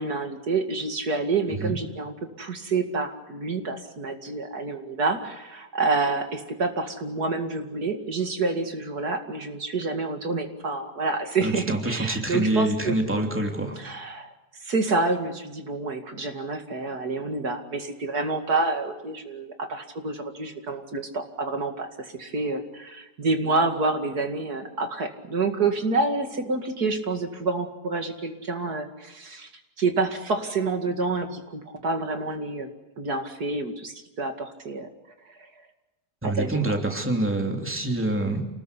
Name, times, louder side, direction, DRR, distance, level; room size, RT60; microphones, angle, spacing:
voice 1, 0.0-12.9 13.8-14.3 14.6-29.5 29.8-32.7 33.0-34.9 36.2-36.6, right 3 dB, 70° right, 5 dB, 2.8 m, -28 dB
voice 2, 11.4-13.8 36.2-38.5, right 2 dB, 5° right, 2 dB, 2.9 m, -26 dB
28.5 x 20.0 x 8.3 m, 1.0 s
omnidirectional pair, 1.7 m